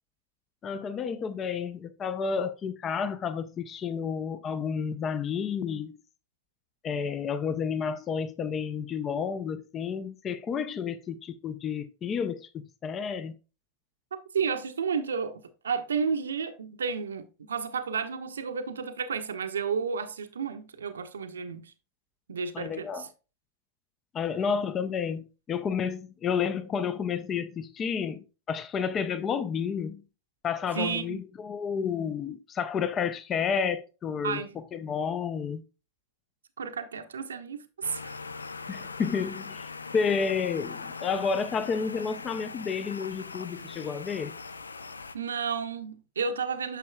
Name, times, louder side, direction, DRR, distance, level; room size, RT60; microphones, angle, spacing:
voice 1, 0.6-6.0 6.8-13.3 22.5-23.0 24.1-30.0 30.4-34.4 34.7-35.6 38.7-44.4, left 6 dB, 25° left, 0.5 m, -31 dB
voice 2, 14.3-21.7 22.3-23.1 30.7-31.2 34.2-34.5 36.6-38.2 45.1-46.8, right 6 dB, 70° right, 0.7 m, -32 dB
sound 1, 37.8-45.2, left 4 dB, 75° left, 0.4 m, -41 dB
9.2 x 6.3 x 2.2 m
figure-of-eight pair, 90°, 0 cm